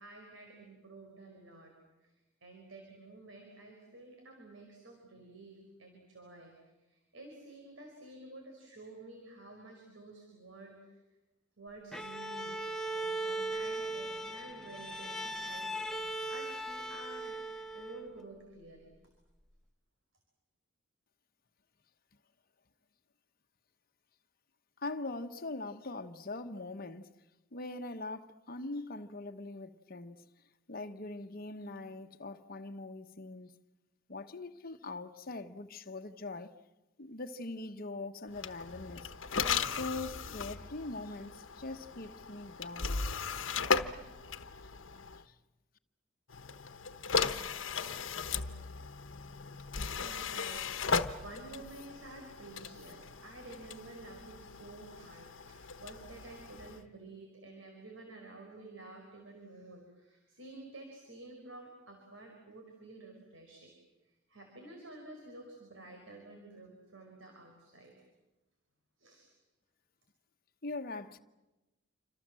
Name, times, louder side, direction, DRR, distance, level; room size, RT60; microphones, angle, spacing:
voice 1, 0.0-1.7 2.0-2.1 2.4-6.6 6.9-10.9 11.6-12.6 12.9-19.0 48.5-48.6 49.4-49.6 50.0-50.6 50.9-63.7 64.0-67.9 69.0-69.3, right 2 dB, 85° right, 5.0 m, -51 dB
Bowed string instrument, 11.9-18.2, right 2 dB, 5° left, 1.2 m, -38 dB
voice 2, 24.8-27.1 27.5-30.2 30.7-33.5 34.1-36.5 37.0-39.1 39.8-43.1 45.2-45.3 70.6-71.2, left 2 dB, 50° left, 1.2 m, -42 dB
sound 1, 38.3-45.2 46.3-56.8, left 5 dB, 80° left, 1.1 m, -37 dB
28.0 x 25.5 x 7.6 m
head